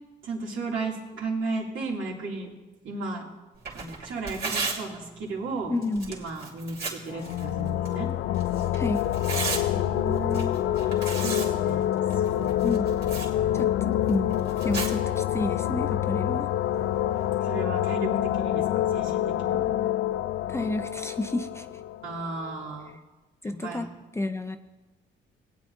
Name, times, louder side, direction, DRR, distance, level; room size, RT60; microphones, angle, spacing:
voice 1, 0.2-2.5 2.8-3.3 3.7-5.7 6.1-8.1 9.6-10.6 11.2-11.9 12.3-12.5 17.4-18.1 18.4-19.6 22.0-23.0 23.4-23.9, right 3 dB, 75° right, -2 dB, 2.6 m, -34 dB
Tearing, 3.5-17.4, right 4 dB, 55° right, 2.8 m, -38 dB
voice 2, 5.7-6.1 8.7-9.1 12.6-12.9 13.5-16.5 20.5-21.7 23.4-23.9 24.1-24.6, left 2 dB, 15° left, 8 dB, 0.6 m, -30 dB
sound 1, 7.1-22.6, left 12 dB, 75° left, 0.4 m, -27 dB
19.5 x 8.9 x 2.7 m, 1.1 s
cardioid pair, 90°, 20 cm